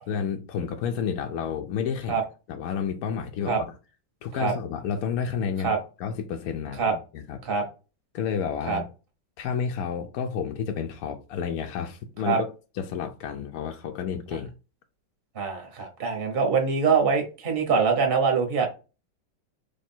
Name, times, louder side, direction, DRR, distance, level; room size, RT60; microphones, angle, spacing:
voice 1, 0.1-2.2 2.5-3.8 4.2-5.7 6.0-7.4 8.1-8.9 9.4-12.5 12.7-14.5, left 7 dB, 75° left, 0.8 m, -30 dB
voice 2, 15.3-18.7, right 5 dB, 40° right, 1.0 m, -24 dB
3.3 x 3.3 x 4.3 m
omnidirectional pair, 2.1 m